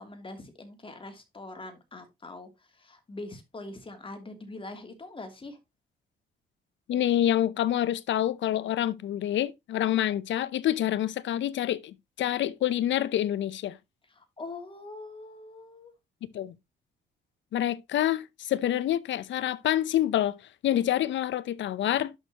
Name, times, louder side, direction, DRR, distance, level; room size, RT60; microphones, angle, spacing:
voice 1, 0.0-5.6 14.1-15.9, left 2 dB, 25° left, 3.0 m, -43 dB
voice 2, 6.9-13.8 16.3-16.5 17.5-20.4 20.6-22.1, left 12 dB, 70° left, 0.8 m, -27 dB
11.0 x 6.4 x 3.0 m
cardioid pair, 90°, 20 cm